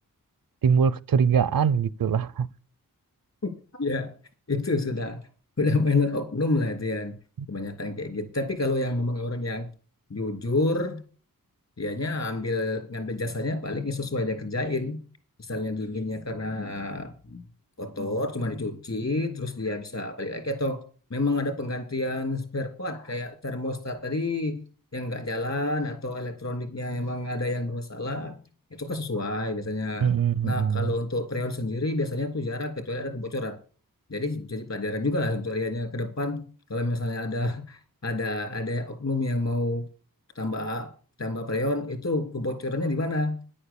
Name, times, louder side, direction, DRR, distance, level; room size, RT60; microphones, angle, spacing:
voice 1, 0.6-2.5 30.0-30.9, right 7 dB, 70° right, 0.7 m, -22 dB
voice 2, 3.8-4.1 4.5-5.2 5.6-7.1 7.5-9.7 10.1-11.0 11.8-15.0 15.4-17.5 17.8-20.8 21.1-24.6 24.9-28.4 28.8-30.1 30.4-33.6 34.1-39.8 40.3-40.9 41.2-43.4, left 2 dB, 50° left, 3.0 m, -29 dB
10.5 x 8.7 x 7.0 m
wide cardioid pair, 120°, 36 cm